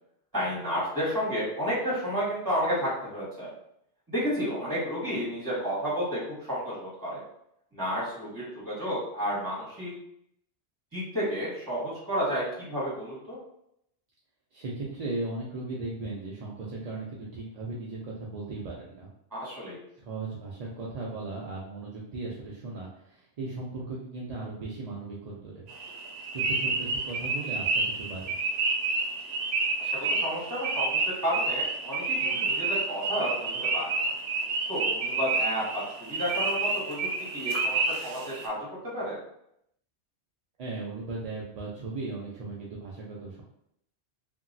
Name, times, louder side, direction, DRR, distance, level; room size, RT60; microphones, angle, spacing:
voice 1, 0.3-3.5 4.1-7.2 7.7-9.9 10.9-13.4 19.3-19.8 29.8-34.1 34.7-37.1 37.3-39.2, equal, 20° right, -9 dB, 1.4 m, -31 dB
voice 2, 14.5-19.1 20.0-25.6 26.3-28.4 40.6-43.4, right 3 dB, 55° right, -5 dB, 0.4 m, -37 dB
sound 1, 25.7-38.5, right 3 dB, 70° right, 0.8 m, -29 dB
2.9 x 2.6 x 2.6 m, 0.75 s
omnidirectional pair, 1.1 m